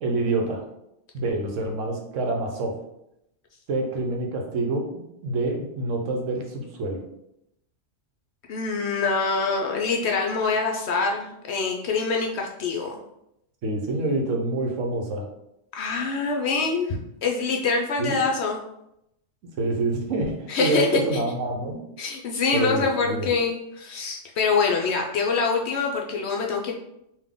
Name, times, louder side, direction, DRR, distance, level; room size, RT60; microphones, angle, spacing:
voice 1, 0.0-0.6 1.1-2.8 3.7-7.0 13.6-15.3 18.0-18.2 19.6-21.8 22.5-23.3, right 2 dB, 70° right, 2 dB, 1.1 m, -27 dB
voice 2, 8.5-13.0 15.7-18.6 20.5-21.2 22.0-26.7, left 4 dB, 65° left, 1 dB, 0.7 m, -25 dB
3.7 x 2.6 x 3.6 m, 0.81 s
omnidirectional pair, 1.4 m